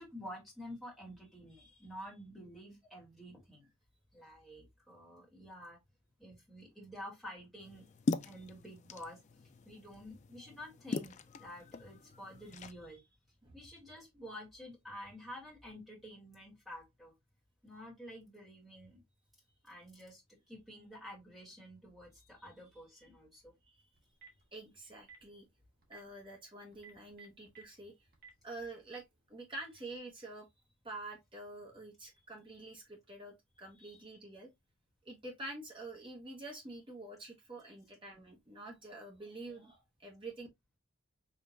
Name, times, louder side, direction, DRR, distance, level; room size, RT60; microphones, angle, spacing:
voice 1, 0.0-3.7 4.1-5.8 6.2-7.9 8.2-13.1 13.5-17.1 17.6-19.0 19.6-23.5 33.8-34.1, equal, ahead, 2.1 m, -50 dB
sound 1, 7.6-12.7, left 3 dB, 35° left, 0.3 m, -41 dB
Telephone, 24.0-24.4 25.0-25.2 25.8-26.0 26.7-27.6 28.1-28.3, right 6 dB, 45° right, 1.6 m, -53 dB
voice 2, 24.5-25.5 25.9-27.9 28.4-30.5 30.8-34.5 35.0-40.5, right 2 dB, 25° right, 1.3 m, -47 dB
5.2 x 3.1 x 2.6 m
head